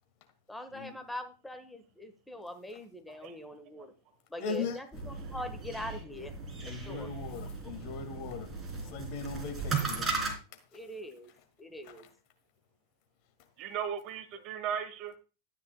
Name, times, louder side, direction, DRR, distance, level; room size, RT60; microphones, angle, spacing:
voice 1, 0.5-3.9 4.3-6.3 6.7-7.1 10.7-11.3 11.6-12.1, left 1 dB, 5° left, 7 dB, 1.2 m, -43 dB
voice 2, 4.4-4.8 6.6-8.5 8.9-10.4, left 5 dB, 45° left, 6 dB, 1.9 m, -39 dB
sound 1, 4.9-10.3, right 4 dB, 20° right, 3.2 m, -37 dB
voice 3, 13.6-15.2, right 8 dB, 40° right, 11 dB, 1.2 m, -37 dB
13.0 x 9.5 x 2.2 m, 0.32 s
figure-of-eight pair, 90°, 0 cm